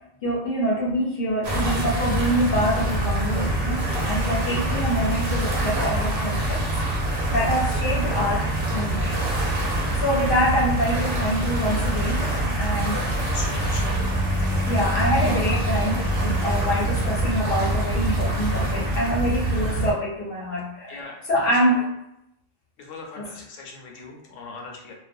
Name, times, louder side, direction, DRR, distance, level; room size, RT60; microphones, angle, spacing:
voice 1, 0.0-3.8 4.1-6.6 6.9-9.1 10.0-12.2 12.6-13.0 14.7-21.0 21.3-21.9 23.2-23.3, equal, 55° left, -5 dB, 0.8 m, -25 dB
sound 1, 1.4-19.9, right 1 dB, 55° right, 0.7 m, -25 dB
voice 2, 12.3-14.0 20.9-21.8 22.8-24.9, left 4 dB, 80° left, 0 dB, 1.0 m, -40 dB
2.4 x 2.2 x 2.6 m, 0.83 s
omnidirectional pair, 1.3 m